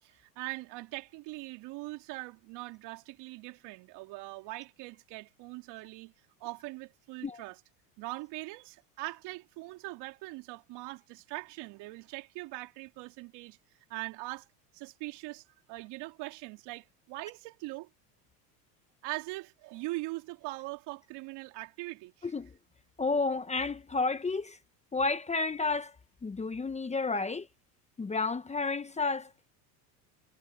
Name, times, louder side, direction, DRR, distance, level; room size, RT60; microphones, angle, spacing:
voice 1, 0.0-6.1 6.4-7.6 8.0-13.6 13.9-14.5 14.7-17.9 19.0-22.3, right 22 dB, 60° right, 3.1 m, -41 dB
voice 2, 23.0-24.6 24.9-25.9 26.2-27.5 28.0-29.3, left 3 dB, 15° left, 1.2 m, -31 dB
supercardioid pair, 105°, 47 cm